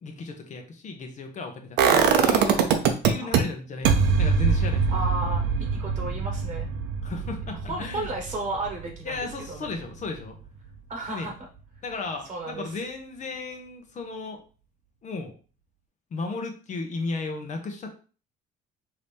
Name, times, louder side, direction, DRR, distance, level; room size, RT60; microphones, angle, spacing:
voice 1, 0.0-2.8 3.0-4.9 7.0-8.1 9.0-10.3 11.1-11.3 11.8-14.4 15.0-15.3 16.1-18.0, left 3 dB, 45° left, 4 dB, 1.0 m, -35 dB
sound 1, 1.8-3.4 3.8-9.7 10.0-10.1, right 6 dB, 90° right, 0.6 m, -23 dB
voice 2, 4.9-5.4 5.7-6.7 7.7-9.7 10.9-11.3 12.3-12.7, right 2 dB, 35° right, 1 dB, 1.1 m, -33 dB
4.9 x 2.9 x 3.5 m, 0.38 s
cardioid pair, 110°, 17 cm